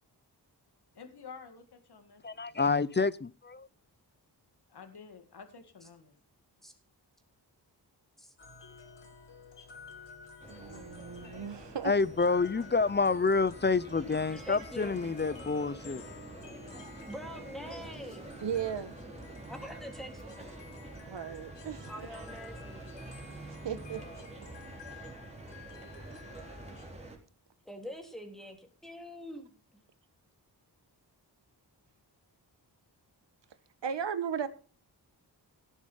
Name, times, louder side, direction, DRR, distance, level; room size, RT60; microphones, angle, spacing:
voice 1, 1.0-2.6 4.7-6.2, left 5 dB, 65° left, 2.0 m, -50 dB
voice 2, 2.2-3.7 11.8-16.0, left 4 dB, 25° left, 0.5 m, -28 dB
sound 1, 8.4-26.9, left 5 dB, 85° left, 3.2 m, -52 dB
sound 2, 10.4-27.2, right 2 dB, 15° right, 3.8 m, -47 dB
voice 3, 10.5-11.9 18.4-18.9 21.0-22.1 23.5-24.0 24.9-25.1 33.8-34.5, right 8 dB, 85° right, 1.6 m, -36 dB
voice 4, 14.3-15.0 16.7-16.8 17.1-18.3 19.5-20.5 21.9-23.2 27.7-29.5, equal, ahead, 3.3 m, -45 dB
17.0 x 7.3 x 5.5 m
wide cardioid pair, 140°, 42 cm